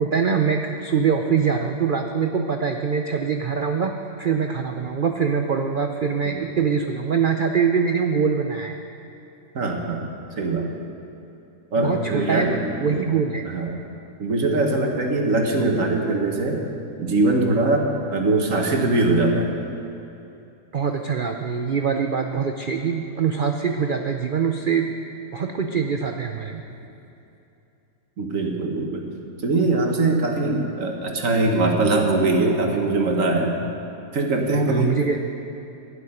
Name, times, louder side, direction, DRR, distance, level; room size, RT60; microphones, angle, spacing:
voice 1, 0.0-8.8 11.8-13.5 20.7-24.9 25.3-26.6 34.7-35.2, right 6 dB, 85° right, 4 dB, 0.4 m, -23 dB
voice 2, 9.5-10.0 10.3-10.7 11.7-13.0 13.4-13.7 14.2-16.6 17.0-19.6 28.2-29.1 29.4-33.5 34.1-35.0, right 2 dB, 55° right, 2 dB, 1.7 m, -22 dB
12.5 x 7.2 x 9.9 m, 2.8 s
omnidirectional pair, 1.8 m